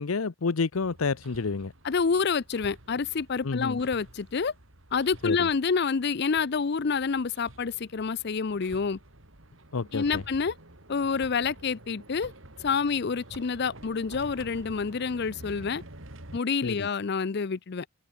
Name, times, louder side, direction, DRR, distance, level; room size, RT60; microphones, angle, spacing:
voice 1, 0.0-1.7 3.4-3.8 5.2-5.5 9.7-10.2 16.6-16.9, left 4 dB, 85° left, 0.7 m, -29 dB
Hammer, 0.7-16.4, right 1 dB, 65° right, 3.7 m, -49 dB
voice 2, 1.8-4.5 4.9-9.0 9.9-10.5 10.9-12.3 12.6-15.8 16.3-17.9, left 5 dB, 50° left, 0.5 m, -28 dB
head